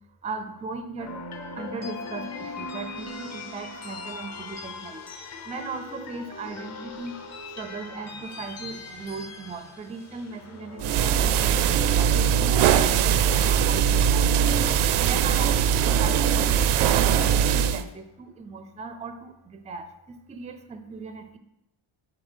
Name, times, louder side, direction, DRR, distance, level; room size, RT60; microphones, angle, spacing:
voice 1, 0.2-1.1 1.6-5.0 5.4-7.2 7.5-14.5 15.0-21.4, right 4 dB, 15° right, 8 dB, 0.3 m, -38 dB
sound 1, 1.0-17.2, left 3 dB, 35° left, 0.7 m, -41 dB
sound 2, 10.8-17.8, right 8 dB, 85° right, 0.6 m, -21 dB
6.9 x 4.0 x 5.5 m, 0.86 s
cardioid pair, 165°, 48 cm